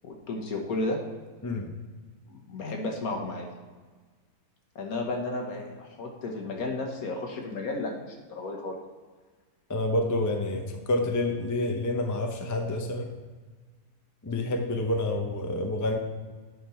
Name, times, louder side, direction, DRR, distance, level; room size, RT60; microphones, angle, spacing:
voice 1, 0.0-1.0 2.5-3.5 4.8-8.8, left 2 dB, 65° left, 2 dB, 1.6 m, -33 dB
voice 2, 1.4-1.7 9.7-13.1 14.2-16.0, left 1 dB, 20° left, 3 dB, 0.4 m, -28 dB
9.4 x 5.5 x 4.3 m, 1.4 s
omnidirectional pair, 1.7 m